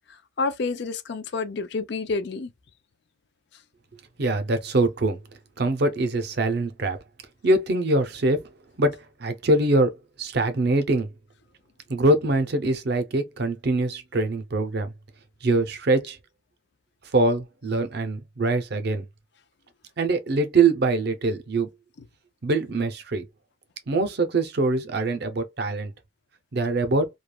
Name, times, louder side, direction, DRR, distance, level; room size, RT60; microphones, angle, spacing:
voice 1, 0.1-2.5, left 4 dB, 55° left, 0.4 m, -29 dB
voice 2, 4.2-5.2 5.6-7.0 7.4-8.5 8.8-11.1 11.9-14.9 15.4-16.2 17.1-19.1 20.0-21.7 22.4-23.2 23.9-25.9 26.5-27.1, right 2 dB, 55° right, 0.6 m, -23 dB
3.2 x 2.3 x 2.2 m
head